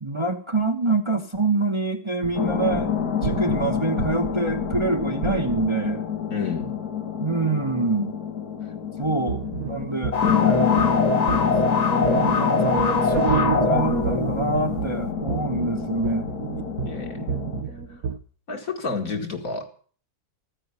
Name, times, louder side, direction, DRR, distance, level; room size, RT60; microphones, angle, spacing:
voice 1, 0.0-2.9 3.2-6.0 7.2-8.2 9.0-11.0 12.0-16.3, right 3 dB, 20° right, 4 dB, 1.1 m, -26 dB
sound 1, 2.2-5.9 9.0-18.2, right 6 dB, 65° right, 1.4 m, -31 dB
sound 2, 2.4-17.6, left 8 dB, 85° left, 1.9 m, -27 dB
voice 2, 6.3-6.7 9.5-9.6 16.8-17.3 18.5-19.7, left 4 dB, 65° left, 3 dB, 2.6 m, -30 dB
sound 3, 10.1-14.8, left 4 dB, 30° left, 0.8 m, -23 dB
14.5 x 9.3 x 8.2 m, 0.43 s
omnidirectional pair, 1.6 m